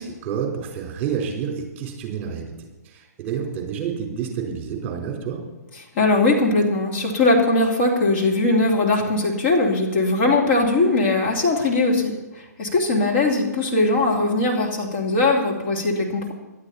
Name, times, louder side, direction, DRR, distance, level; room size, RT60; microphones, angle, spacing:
voice 1, 0.0-5.4, right 7 dB, 25° right, 0 dB, 4.4 m, -29 dB
voice 2, 6.0-12.1 12.6-16.3, left 2 dB, 40° left, -1 dB, 2.9 m, -20 dB
18.0 x 12.0 x 4.3 m, 1.0 s
figure-of-eight pair, 130°, 9 cm